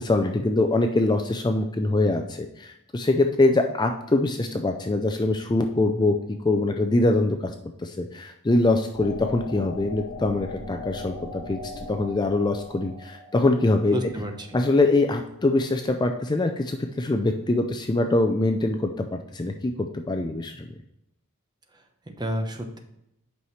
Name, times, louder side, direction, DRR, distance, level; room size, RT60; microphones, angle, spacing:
voice 1, 0.0-7.5 7.8-11.6 11.9-14.0 14.5-20.6, left 2 dB, 20° left, 5 dB, 0.4 m, -23 dB
sound 1, 8.9-15.6, left 3 dB, 85° left, 0.9 m, -40 dB
voice 2, 13.9-14.6 22.1-22.8, equal, 20° right, 4 dB, 0.8 m, -30 dB
8.4 x 5.7 x 3.1 m, 0.81 s
head